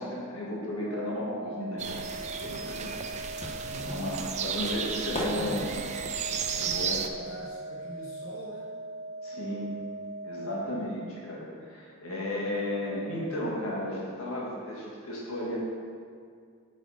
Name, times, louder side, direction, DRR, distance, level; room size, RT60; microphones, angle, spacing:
voice 1, 0.0-2.9 3.7-5.6 6.6-7.0 9.2-9.9 10.2-15.6, left 1 dB, 85° left, -4 dB, 1.6 m, -34 dB
sound 1, 0.8-10.8, right 2 dB, 80° right, 1.5 m, -40 dB
sound 2, 1.8-7.1, right 6 dB, 35° right, 0.3 m, -34 dB
sound 3, 3.4-8.4 8.7-10.3 10.5-10.6, equal, 30° left, 0.9 m, -40 dB
voice 2, 3.5-4.2 5.3-5.9 6.6-8.8, equal, 65° left, -5 dB, 1.0 m, -42 dB
8.4 x 4.1 x 4.1 m, 2.1 s
head